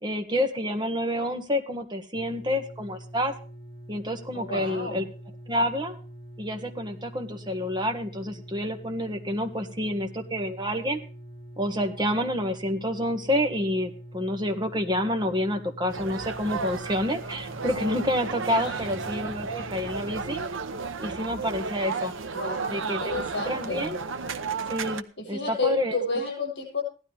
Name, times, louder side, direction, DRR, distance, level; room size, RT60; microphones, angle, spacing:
voice 1, 0.0-3.3 3.9-5.0 5.5-6.0 6.4-11.0 11.6-20.4 21.0-22.1 22.7-24.0 24.7-26.0, left 1 dB, 25° right, 5 dB, 1.8 m, -28 dB
sound 1, 2.1-20.4, equal, 30° left, 4.7 m, -44 dB
voice 2, 4.3-5.0 18.5-18.9 22.3-23.9 25.2-26.8, left 2 dB, 60° left, 1 dB, 7.9 m, -31 dB
sound 2, 15.9-25.0, right 4 dB, 80° right, 1.0 m, -33 dB
17.0 x 12.5 x 3.5 m, 0.36 s
head